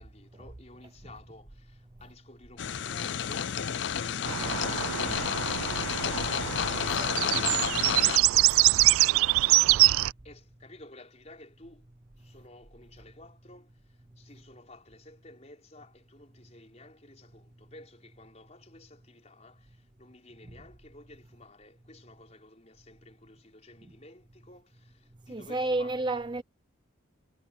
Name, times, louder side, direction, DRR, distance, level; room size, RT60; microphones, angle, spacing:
voice 1, 0.0-11.9 12.2-26.0, left 2 dB, 35° left, 5.0 m, -53 dB
sound 1, 2.6-8.2, left 8 dB, 60° left, 0.5 m, -31 dB
sound 2, 4.3-10.1, right 17 dB, 90° right, 0.3 m, -24 dB
voice 2, 25.3-26.4, right 2 dB, 20° right, 0.7 m, -31 dB
head